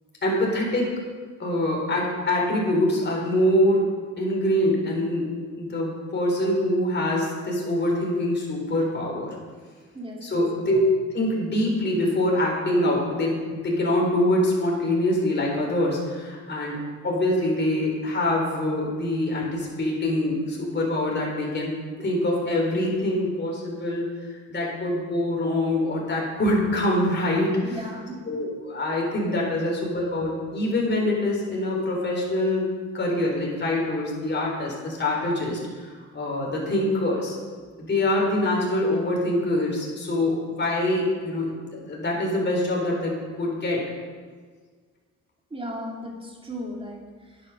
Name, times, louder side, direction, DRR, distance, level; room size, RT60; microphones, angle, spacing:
voice 1, 0.2-0.9 1.4-3.9 4.2-5.3 5.6-9.3 10.2-10.8 11.1-16.8 17.0-21.7 22.0-27.8 28.3-32.7 32.9-37.4 37.8-43.8, left 1 dB, 35° left, -2 dB, 4.2 m, -24 dB
voice 2, 9.9-10.7 27.6-28.2 45.5-47.5, equal, 20° right, -1 dB, 2.9 m, -36 dB
9.7 x 9.7 x 6.6 m, 1.6 s
cardioid pair, 90°, 30 cm